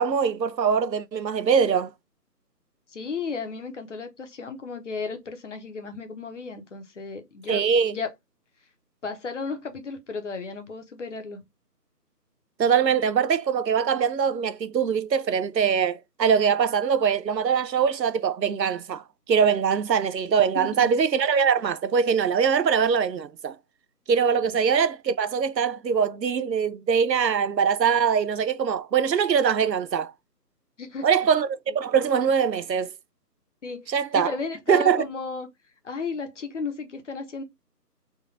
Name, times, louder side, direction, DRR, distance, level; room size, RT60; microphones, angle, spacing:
voice 1, 0.0-1.9 7.5-7.9 12.6-23.5 24.1-30.1 31.0-32.9 33.9-34.3 34.7-35.0, right 7 dB, 90° right, 0.7 m, -22 dB
voice 2, 2.9-8.1 9.0-11.4 20.5-20.9 24.4-24.6 30.8-31.3 33.6-35.5 35.8-37.4, left 4 dB, 45° left, 1.0 m, -34 dB
3.7 x 2.5 x 4.2 m
figure-of-eight pair, 160°, 49 cm